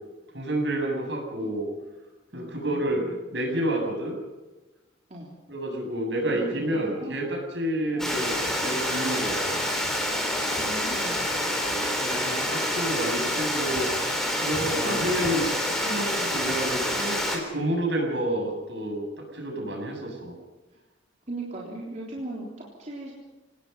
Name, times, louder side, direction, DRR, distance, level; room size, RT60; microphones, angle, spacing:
voice 1, 0.3-1.7 2.3-3.0 3.3-4.2 5.5-9.6 11.6-13.9 14.4-15.5 15.8-19.0 19.3-20.3, right 1 dB, 65° right, 1 dB, 7.6 m, -29 dB
voice 2, 2.3-3.1 5.1-5.3 6.2-7.2 7.9-8.2 10.6-11.3 12.3-12.5 14.8-15.4 16.1-16.4 21.3-22.5 22.8-23.1, right 1 dB, 40° right, -4 dB, 3.6 m, -38 dB
Water, 8.0-17.4, equal, ahead, 4.1 m, -27 dB
28.0 x 18.5 x 5.6 m, 1.2 s
head